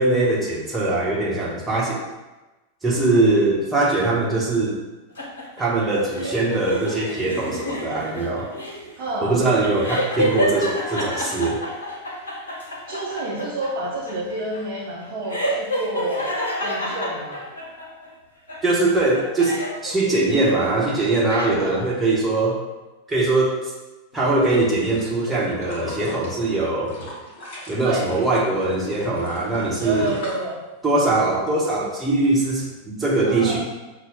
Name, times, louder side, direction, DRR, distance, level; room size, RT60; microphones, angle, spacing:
voice 1, 0.0-2.0 2.8-4.8 5.6-8.5 9.2-11.6 18.6-22.6 23.1-23.6 24.1-26.9 27.7-30.1 30.8-33.6, right 2 dB, 15° right, -4 dB, 1.1 m, -21 dB
sound 1, 5.2-18.1 18.5-20.8 21.0-21.9, equal, 75° left, 0.8 m, -29 dB
voice 2, 9.0-9.4 9.9-10.0 12.9-16.3 16.6-17.5 21.6-21.8 27.8-28.0 29.8-30.6 33.3-33.6, right 2 dB, 45° right, -6 dB, 0.8 m, -29 dB
sound 2, 24.1-28.2 28.6-31.1 31.5-31.6, left 1 dB, 50° left, 1.4 m, -36 dB
6.0 x 2.3 x 3.7 m, 1.1 s
figure-of-eight pair, 90°, 0 cm